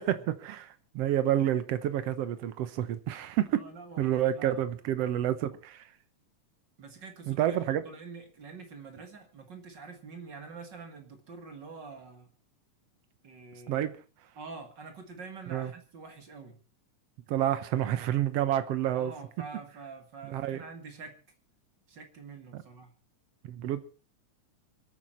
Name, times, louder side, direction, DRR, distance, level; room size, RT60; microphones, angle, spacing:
voice 1, 0.0-3.6 4.0-5.8 7.3-7.8 13.7-14.0 15.5-15.7 17.3-19.1 20.3-20.6 22.5-22.6 23.4-23.8, right 11 dB, 65° right, 1.6 m, -29 dB
voice 2, 3.5-4.6 6.8-7.6 7.8-12.3 13.2-13.9 14.4-16.6 18.9-21.2 21.9-22.9, right 4 dB, 40° right, 1.9 m, -46 dB
26.0 x 9.0 x 4.4 m
omnidirectional pair, 3.8 m